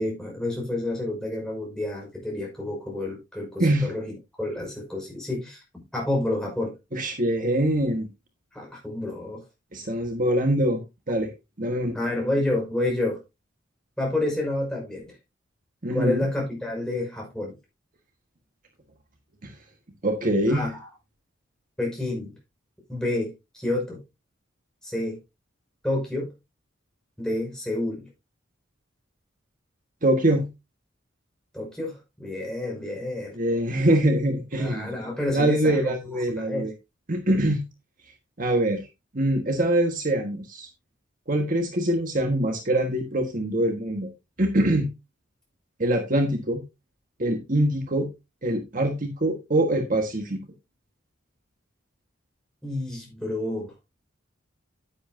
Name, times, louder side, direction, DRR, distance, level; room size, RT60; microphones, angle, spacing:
voice 1, 0.0-6.7 8.5-9.4 11.9-13.2 14.0-15.2 15.9-17.5 20.5-20.9 21.8-22.4 22.9-24.0 24.8-25.2 25.8-26.3 27.2-28.1 31.5-33.4 34.6-35.9 36.3-36.6 52.6-53.7, left 1 dB, 5° left, 5.8 m, -29 dB
voice 2, 6.9-8.1 9.7-10.8 11.1-11.3 11.6-12.0 15.8-16.2 19.4-19.5 20.0-20.7 30.0-30.5 33.3-34.9 35.3-36.7 37.1-37.6 38.4-38.8 39.1-40.7 41.3-44.1 44.4-44.9 45.8-46.6 47.2-48.1 48.4-50.4, right 1 dB, 45° right, 1.5 m, -24 dB
10.0 x 10.0 x 2.7 m
head